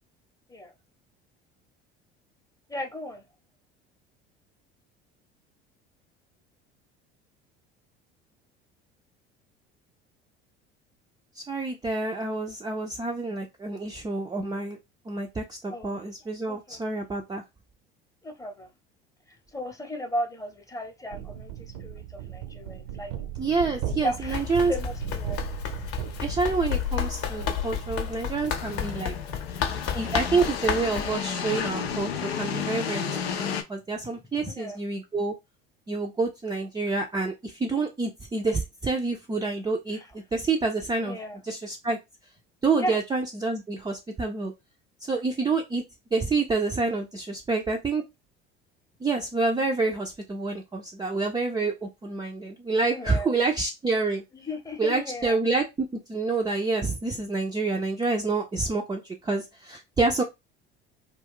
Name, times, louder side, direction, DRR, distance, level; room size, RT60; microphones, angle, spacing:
voice 1, 2.7-3.2 15.7-16.0 16.5-16.8 18.2-18.7 19.3-23.1 24.0-25.5 34.4-34.8 39.9-40.1 41.0-41.4 42.8-43.0 52.9-53.4 54.3-55.4, equal, 10° left, 0.8 m, -35 dB
voice 2, 11.4-14.8 15.1-17.4 23.4-24.7 26.2-29.1 29.9-35.3 35.9-41.2 41.4-42.0 42.6-44.5 45.0-45.8 46.1-48.0 49.0-54.2 54.8-60.2, right 3 dB, 15° right, 0.4 m, -28 dB
sound 1, 21.1-28.1, right 12 dB, 65° right, 0.7 m, -37 dB
sound 2, 23.6-33.6, left 7 dB, 85° left, 0.5 m, -33 dB
Run, 24.2-31.1, left 8 dB, 50° left, 0.7 m, -32 dB
2.3 x 2.3 x 3.5 m
hypercardioid pair, 65°, 30 cm